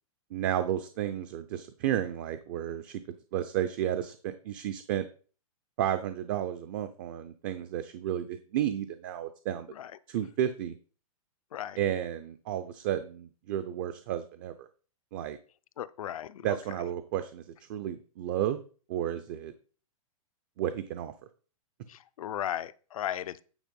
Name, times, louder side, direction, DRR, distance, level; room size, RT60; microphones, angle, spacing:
voice 1, 0.3-3.0 3.3-5.0 5.8-9.7 10.1-10.7 11.8-14.7 15.1-15.4 16.4-17.4 17.7-18.6 18.9-19.5 20.6-21.1, right 11 dB, 35° right, 0.6 m, -32 dB
voice 2, 15.8-16.6 21.9-23.4, left 11 dB, 70° left, 0.6 m, -36 dB
9.2 x 4.6 x 5.3 m
hypercardioid pair, 165°, 18 cm